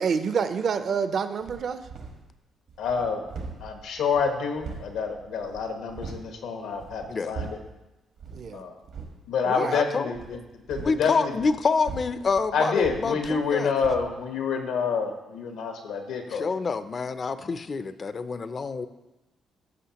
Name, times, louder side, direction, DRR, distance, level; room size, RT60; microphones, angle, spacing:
voice 1, 0.0-1.8 8.3-8.6 9.6-9.8, right 6 dB, 55° right, 10 dB, 0.5 m, -27 dB
sound 1, 1.4-2.3 2.7-6.3 6.7-7.8 8.2-8.5 8.8-9.2 10.1-13.6 13.8-14.1, right 4 dB, 75° right, 1.3 m, -41 dB
voice 2, 2.8-3.3 3.6-7.6 8.5-8.7 9.3-10.4 10.7-11.4 12.5-16.5, left 5 dB, 85° left, 4 dB, 1.1 m, -28 dB
voice 3, 9.4-10.1 10.8-13.7 16.3-18.9, left 4 dB, 40° left, 12 dB, 0.4 m, -27 dB
13.5 x 5.6 x 2.9 m, 1.0 s
cardioid pair, 90°, 0 cm